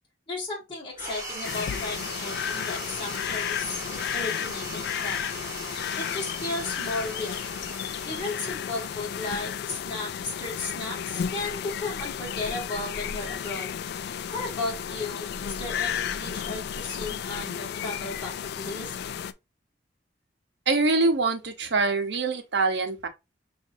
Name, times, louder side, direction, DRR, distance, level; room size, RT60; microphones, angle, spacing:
voice 1, 0.3-5.2 6.0-7.4 8.0-13.7 14.3-18.9, left 2 dB, 25° left, 1.5 m, -35 dB
sound 1, 1.0-9.8, right 1 dB, 20° right, 1.4 m, -39 dB
sound 2, 1.4-19.3, left 8 dB, 60° left, 0.3 m, -33 dB
voice 2, 20.7-23.1, right 3 dB, 70° right, 0.8 m, -24 dB
6.0 x 2.6 x 2.6 m
head